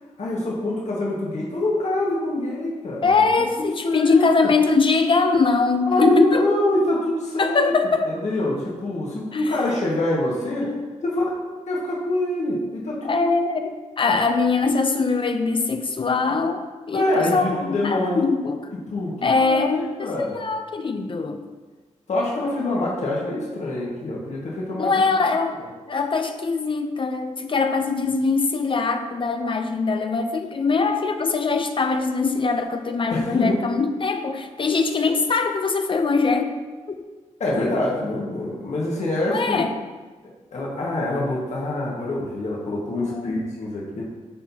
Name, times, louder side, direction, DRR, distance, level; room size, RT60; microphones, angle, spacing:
voice 1, 0.2-4.3 5.9-7.7 8.0-10.7 11.0-13.3 14.0-14.2 16.9-18.2 18.9-20.4 22.1-25.0 33.1-33.6 37.4-39.6 40.5-44.0, left 1 dB, 60° left, -4 dB, 1.5 m, -25 dB
voice 2, 3.0-6.5 7.4-8.1 9.3-9.5 10.6-10.8 11.1-11.3 13.0-18.7 19.2-21.4 24.8-25.6 25.9-36.5 37.0-37.1 39.3-39.7 43.0-43.4, left 4 dB, 40° left, 7 dB, 0.5 m, -22 dB
11.0 x 4.4 x 2.8 m, 1.3 s
cardioid pair, 90°, 13 cm